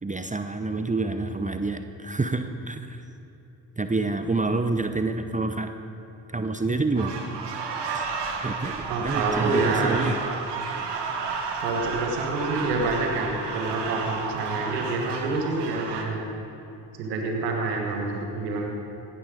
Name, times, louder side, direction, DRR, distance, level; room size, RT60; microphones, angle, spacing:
voice 1, 0.0-3.0 3.8-5.7 6.3-7.2 7.9-8.1 8.4-10.1, right 3 dB, 15° right, 7 dB, 0.9 m, -28 dB
sound 1, 7.0-16.0, right 5 dB, 60° right, 2.0 m, -32 dB
voice 2, 8.9-10.0 11.6-16.2 17.0-18.7, right 3 dB, 85° right, 1 dB, 1.5 m, -27 dB
16.5 x 11.0 x 5.0 m, 2.9 s
hypercardioid pair, 45°, 47 cm